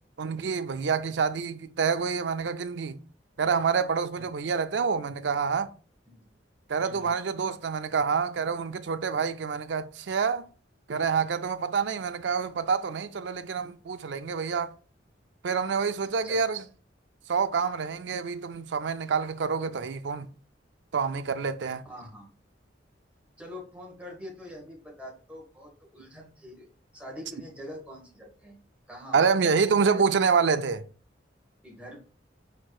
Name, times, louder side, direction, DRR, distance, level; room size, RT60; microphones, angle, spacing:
voice 1, 0.2-3.0 3.4-5.7 6.7-10.5 10.9-14.7 15.4-16.6 17.3-20.3 20.9-21.8 29.1-30.8, right 5 dB, 70° right, 0.4 m, -27 dB
voice 2, 21.6-22.3 23.4-26.7 26.9-28.6 28.9-30.0 31.6-32.0, left 1 dB, 5° right, 1.3 m, -44 dB
4.8 x 4.4 x 2.4 m
head